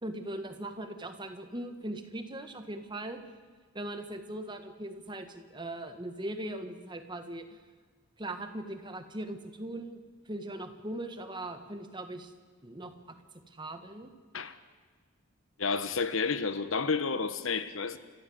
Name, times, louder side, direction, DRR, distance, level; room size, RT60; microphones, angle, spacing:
voice 1, 0.0-3.2 3.7-7.6 8.2-12.3 12.6-12.9 13.5-14.1, right 1 dB, 20° right, 7 dB, 1.5 m, -40 dB
voice 2, 15.6-18.0, left 4 dB, 70° left, 12 dB, 1.2 m, -30 dB
29.5 x 14.5 x 7.9 m, 1.5 s
head